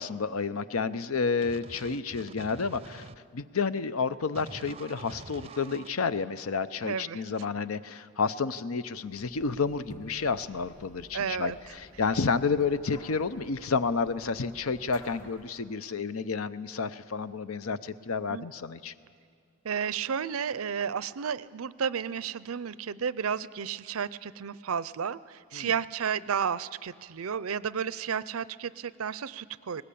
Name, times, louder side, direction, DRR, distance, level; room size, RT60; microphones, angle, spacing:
voice 1, 0.0-3.0 3.3-18.9 25.5-25.7, left 4 dB, 80° left, 14 dB, 0.7 m, -30 dB
sound 1, 1.4-3.2 4.4-5.9, right 3 dB, 30° right, 0.5 m, -46 dB
voice 2, 6.8-7.2 11.1-11.6 18.3-18.5 19.6-29.8, right 7 dB, 85° right, 17 dB, 0.6 m, -32 dB
sound 2, 9.1-15.6, left 1 dB, 35° left, 3.4 m, -52 dB
20.0 x 19.5 x 8.5 m, 2.3 s
head